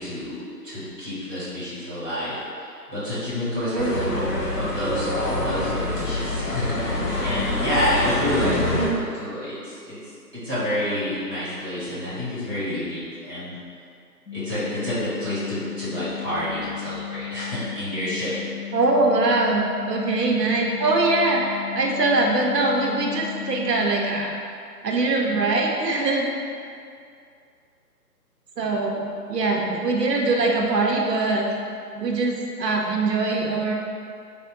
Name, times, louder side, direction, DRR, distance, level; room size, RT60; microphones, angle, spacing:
voice 1, 0.0-10.0 10.3-13.6 14.3-18.3, left 1 dB, 15° right, -13 dB, 0.9 m, -29 dB
voice 2, 3.6-4.1 8.4-8.8 18.7-24.3 24.8-26.3 28.6-31.5 31.9-33.7, right 2 dB, 80° right, 0 dB, 0.7 m, -22 dB
sound 1, 3.8-8.9, left 1 dB, 55° left, 0.9 m, -26 dB
sound 2, 14.3-24.3, left 13 dB, 70° left, 1.2 m, -35 dB
3.5 x 2.0 x 3.8 m, 2.4 s
figure-of-eight pair, 165°, 48 cm